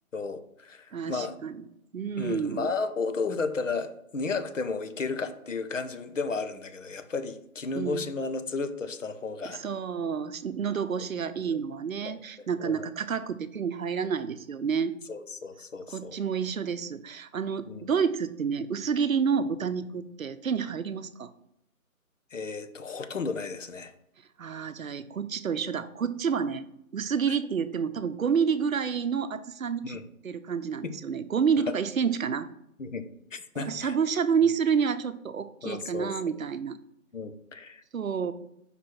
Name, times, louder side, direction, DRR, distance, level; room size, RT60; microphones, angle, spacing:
voice 1, 0.1-1.3 2.2-9.6 11.0-11.1 11.4-11.6 12.0-12.9 15.1-16.2 17.6-17.9 22.3-23.9 27.3-27.4 29.8-30.0 30.8-30.9 32.8-33.0 33.3-34.0 35.6-36.1 37.1-37.8, left 4 dB, 60° left, 9 dB, 0.8 m, -33 dB
voice 2, 0.9-1.6 1.9-2.7 7.8-8.0 9.4-14.9 15.9-21.3 24.4-26.6 26.9-30.0 30.2-32.5 33.6-36.8 37.9-38.3, right 6 dB, 70° right, 12 dB, 0.7 m, -29 dB
5.0 x 4.4 x 4.9 m, 0.77 s
hypercardioid pair, 170°, 43 cm